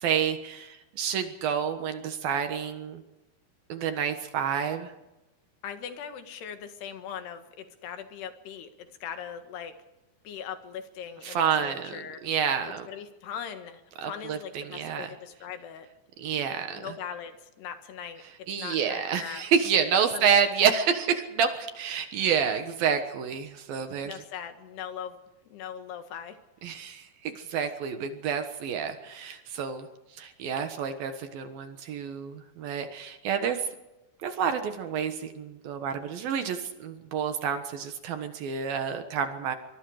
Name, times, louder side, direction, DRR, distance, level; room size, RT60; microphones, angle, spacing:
voice 1, 0.0-3.0 3.7-4.9 11.2-12.9 14.0-14.4 14.6-15.1 16.2-16.9 18.5-24.1 26.6-29.9 30.2-33.6 34.2-39.6, right 7 dB, 70° right, 8 dB, 3.0 m, -29 dB
voice 2, 5.6-9.7 10.3-12.2 12.7-15.9 16.8-19.4 20.1-20.3 24.0-25.2 25.5-26.4, left 8 dB, 80° left, 8 dB, 3.8 m, -40 dB
24.0 x 24.0 x 4.9 m, 1.0 s
omnidirectional pair, 4.6 m